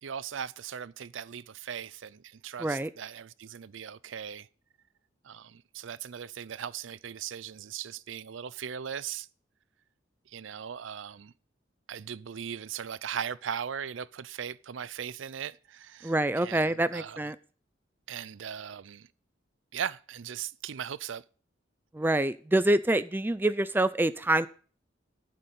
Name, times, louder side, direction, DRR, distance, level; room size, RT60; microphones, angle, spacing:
voice 1, 0.0-4.5 5.2-9.3 10.3-11.3 11.9-17.2 18.1-19.1 19.7-21.2, right 8 dB, 75° right, 0.5 m, -38 dB
voice 2, 16.0-17.4 21.9-24.5, right 1 dB, 10° right, 0.4 m, -26 dB
9.2 x 6.8 x 8.1 m
head